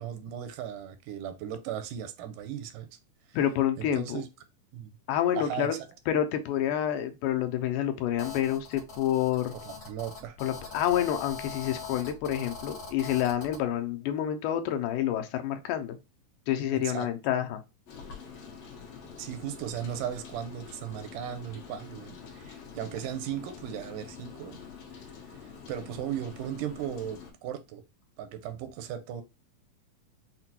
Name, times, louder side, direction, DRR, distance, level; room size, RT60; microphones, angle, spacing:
voice 1, 0.0-2.9 3.3-3.4 3.8-4.3 4.7-4.9 5.4-5.9 9.5-10.4 16.7-17.1 19.2-24.6 25.7-27.8 28.2-29.2, right 9 dB, 85° right, 2.1 m, -37 dB
voice 2, 3.3-4.2 5.1-5.8 6.1-9.5 10.4-16.0 16.5-17.6, left 11 dB, 80° left, 2.1 m, -28 dB
Telephone, 8.2-13.6, left 5 dB, 35° left, 1.1 m, -42 dB
Rain, 17.9-27.3, left 6 dB, 65° left, 1.8 m, -46 dB
5.8 x 2.2 x 2.7 m
omnidirectional pair, 3.7 m